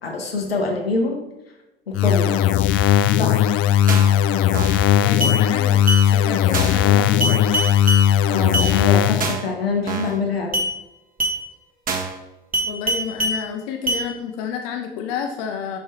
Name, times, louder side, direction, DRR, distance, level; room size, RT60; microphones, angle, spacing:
voice 1, 0.0-1.2 1.9-2.4 3.2-3.4 8.3-10.6, left 3 dB, 85° left, 3 dB, 1.5 m, -25 dB
sound 1, 1.9-9.4, left 10 dB, 45° left, 0.5 m, -17 dB
sound 2, 3.9-4.2 4.5-4.8 5.2-5.4 5.9-6.0 6.5-6.8 7.2-8.0 8.5-8.7 9.2-9.5 9.9-10.2 10.5-10.7 11.2-11.4 11.9-12.2 12.5-13.4 13.9-14.0, right 2 dB, 30° right, 1.6 m, -23 dB
voice 2, 4.9-7.4 12.6-15.8, left 7 dB, 60° left, 4 dB, 1.1 m, -30 dB
11.0 x 6.5 x 2.9 m, 0.98 s
figure-of-eight pair, 65°, 29 cm